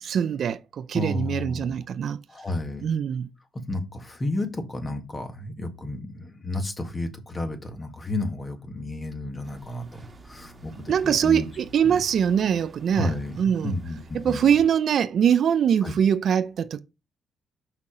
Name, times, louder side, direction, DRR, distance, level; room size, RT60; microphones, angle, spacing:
voice 1, 0.0-2.2 2.8-3.3 10.9-13.7 14.1-16.8, right 8 dB, 60° right, 0.5 m, -23 dB
voice 2, 0.9-1.8 2.3-2.9 3.7-11.5 11.8-12.0 12.9-13.4 13.6-14.5 15.8-15.9, left 2 dB, 25° left, 1.9 m, -32 dB
sound 1, 9.4-14.7, right 2 dB, 25° right, 1.7 m, -49 dB
6.0 x 5.9 x 5.1 m
cardioid pair, 105°, 0 cm